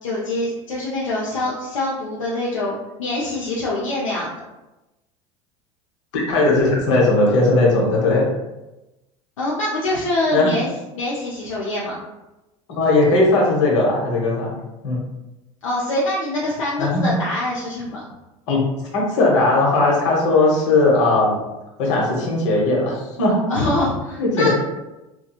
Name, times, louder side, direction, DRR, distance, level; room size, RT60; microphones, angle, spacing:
voice 1, 0.0-4.4 9.4-10.7 10.9-12.0 15.6-18.0 23.5-24.5, left 1 dB, 90° left, -5 dB, 0.5 m, -24 dB
voice 2, 6.1-8.3 10.3-10.5 12.7-14.5 14.8-15.0 16.8-17.1 18.5-18.6 18.9-21.3 21.8-23.4 24.2-24.5, left 2 dB, 70° left, -2 dB, 0.9 m, -18 dB
2.9 x 2.2 x 2.3 m, 1.0 s
hypercardioid pair, 80°, 16 cm